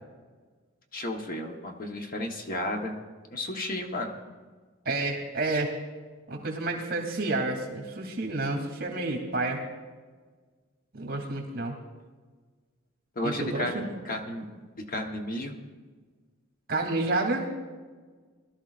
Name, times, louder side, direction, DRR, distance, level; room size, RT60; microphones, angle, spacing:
voice 1, 0.9-3.0 3.3-4.2 13.2-14.5 14.8-15.6, left 1 dB, 45° left, 3 dB, 1.1 m, -33 dB
voice 2, 4.8-5.7 6.3-9.6 10.9-11.7 13.2-13.8 16.7-17.5, right 2 dB, 45° right, 2 dB, 2.7 m, -29 dB
21.0 x 13.0 x 2.5 m, 1.4 s
head